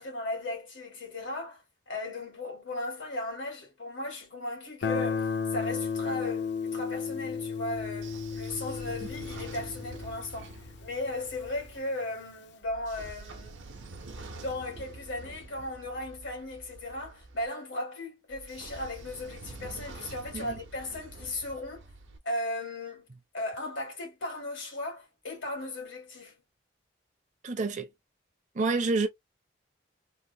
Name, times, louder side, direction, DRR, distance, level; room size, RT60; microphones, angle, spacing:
voice 1, 0.0-13.6 14.4-21.8 22.2-23.1 23.3-26.3, left 2 dB, 85° left, 2.1 m, -36 dB
Guitar, 4.8-11.5, left 6 dB, 65° left, 0.5 m, -34 dB
Train / Sliding door, 7.8-11.8 12.6-17.5 18.3-22.2, right 2 dB, 85° right, 0.8 m, -47 dB
voice 2, 27.4-27.9 28.5-29.1, right 3 dB, 40° right, 0.5 m, -28 dB
3.6 x 2.1 x 2.7 m
head